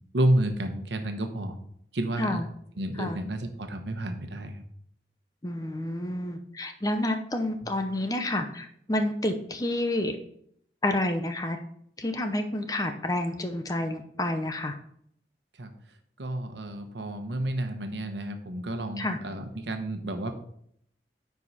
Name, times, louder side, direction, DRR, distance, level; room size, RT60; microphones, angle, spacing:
voice 1, 0.1-1.6 1.9-2.4 2.8-4.6 7.6-7.7 15.6-15.7 16.2-20.3, right 1 dB, 85° right, 6 dB, 1.1 m, -30 dB
voice 2, 5.4-10.2 10.8-11.6 12.0-14.7 19.0-19.2, left 1 dB, 20° left, 7 dB, 0.7 m, -29 dB
9.6 x 4.7 x 4.2 m, 0.68 s
head